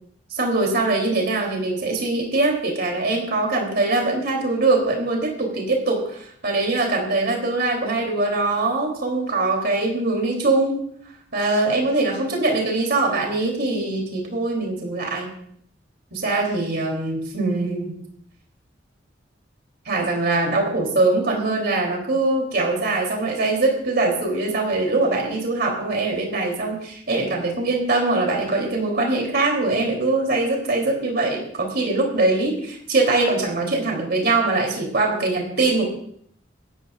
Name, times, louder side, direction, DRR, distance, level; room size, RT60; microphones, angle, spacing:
voice 1, 0.3-10.8 11.3-15.3 16.1-17.9 19.8-35.9, right 2 dB, 60° right, 0 dB, 3.2 m, -22 dB
23.5 x 12.0 x 2.5 m, 0.66 s
head